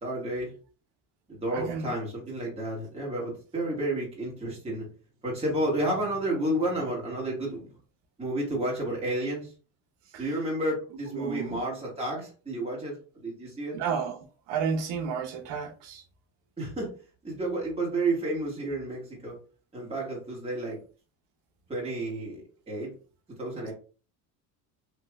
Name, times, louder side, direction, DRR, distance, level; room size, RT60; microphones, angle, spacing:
voice 1, 0.0-0.5 1.3-4.9 5.2-7.7 8.2-9.5 10.2-13.8 16.6-16.9 17.2-19.4 19.7-20.8 21.7-22.9 23.4-23.7, right 1 dB, 15° right, 1.7 m, -31 dB
voice 2, 1.5-1.9 10.1-10.2 11.1-11.6 13.7-16.0, right 6 dB, 70° right, 0.9 m, -32 dB
3.3 x 2.9 x 2.3 m
supercardioid pair, 95°, 45 cm